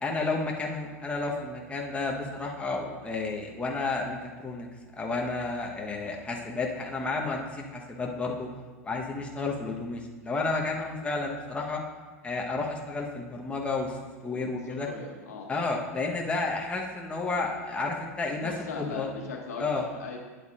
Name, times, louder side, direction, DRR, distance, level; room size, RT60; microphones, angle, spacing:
voice 1, 0.0-4.7 5.0-8.5 8.8-11.8 12.2-14.0 14.2-14.9 15.5-19.1 19.6-19.8, left 3 dB, 15° left, -1 dB, 1.1 m, -31 dB
voice 2, 14.7-15.5 18.3-20.2, left 4 dB, 80° left, 0 dB, 1.5 m, -39 dB
9.5 x 7.8 x 2.5 m, 1.4 s
hypercardioid pair, 95°, 8 cm